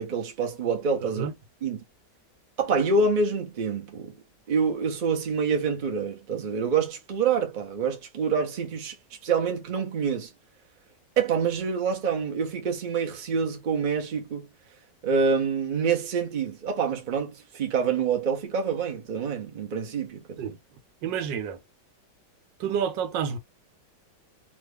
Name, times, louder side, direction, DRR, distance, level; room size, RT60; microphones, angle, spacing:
voice 1, 0.0-1.3 1.6-1.8 2.6-4.2 4.5-9.0 9.2-10.3 11.2-14.5 15.0-20.6, right 5 dB, 45° right, 0.6 m, -26 dB
voice 2, 21.0-21.6 22.6-23.4, right 7 dB, 90° right, 1.4 m, -29 dB
3.0 x 2.3 x 3.3 m
omnidirectional pair, 1.9 m